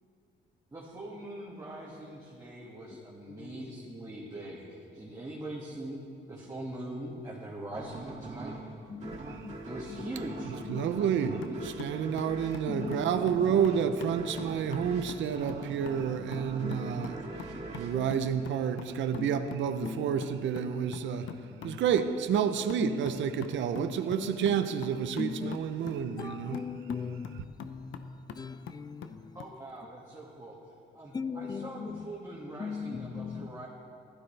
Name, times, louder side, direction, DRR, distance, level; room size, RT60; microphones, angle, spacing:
voice 1, 0.7-6.0 6.3-8.6 9.7-10.5 11.2-11.7 29.3-30.6 30.9-33.7, right 1 dB, 15° right, 2.0 m, -42 dB
voice 2, 3.3-3.8 8.9-9.6 9.9-10.1 10.7-11.1 12.7-13.5 16.6-17.2 17.7-18.5 19.2-19.4 19.8-20.3 20.6-20.9 21.6-21.8 22.8-24.6 25.2-29.4 31.1-32.1 32.6-33.5, left 5 dB, 20° left, 0.3 m, -40 dB
sound 1, 7.7-19.0, right 2 dB, 35° right, 2.3 m, -42 dB
voice 3, 10.7-11.3 11.8-17.2 17.7-21.3 21.6-26.6, right 8 dB, 70° right, 0.6 m, -29 dB
sound 2, 11.4-29.6, left 7 dB, 75° left, 0.7 m, -46 dB
15.5 x 12.5 x 3.4 m
cardioid pair, 90°, 20 cm